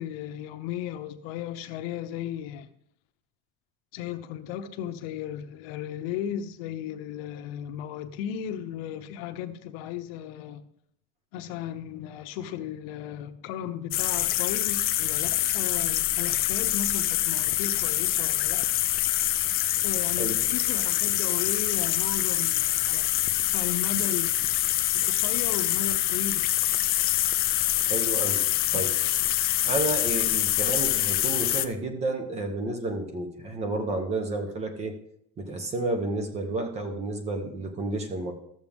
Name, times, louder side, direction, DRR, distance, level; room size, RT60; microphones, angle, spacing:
voice 1, 0.0-2.7 3.9-10.6 11.3-18.7 19.8-23.0 23.5-24.3 25.0-26.5 28.7-28.8, left 9 dB, 80° left, 0.9 m, -35 dB
sound 1, 13.9-31.7, left 14 dB, 35° left, 0.4 m, -25 dB
voice 2, 27.8-28.4 28.7-28.9 29.6-35.0 35.4-38.3, right 2 dB, 20° right, 1.0 m, -31 dB
13.0 x 7.1 x 3.6 m
cardioid pair, 180°, 29 cm